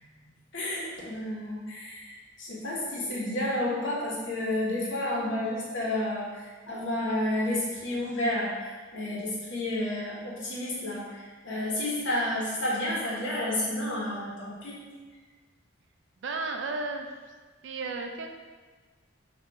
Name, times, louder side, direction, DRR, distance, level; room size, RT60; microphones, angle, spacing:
voice 1, 0.5-14.8, left 1 dB, 65° left, -6 dB, 1.3 m, -31 dB
voice 2, 16.2-17.1 17.6-18.3, right 3 dB, 60° right, 4 dB, 0.4 m, -33 dB
4.0 x 2.7 x 4.7 m, 1.4 s
head